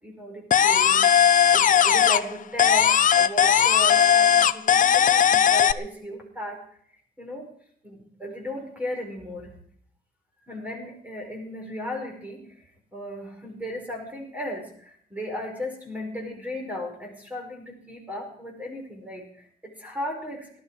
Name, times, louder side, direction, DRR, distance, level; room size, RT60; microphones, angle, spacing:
voice 1, 0.0-1.3 1.5-6.6 7.2-7.5 7.8-9.5 10.5-12.6 12.9-20.6, left 1 dB, 10° right, 1 dB, 5.1 m, -35 dB
sound 1, 0.5-2.3 2.6-5.7, left 8 dB, 55° left, 0.6 m, -18 dB
19.0 x 12.5 x 4.8 m, 0.62 s
wide cardioid pair, 145°, 17 cm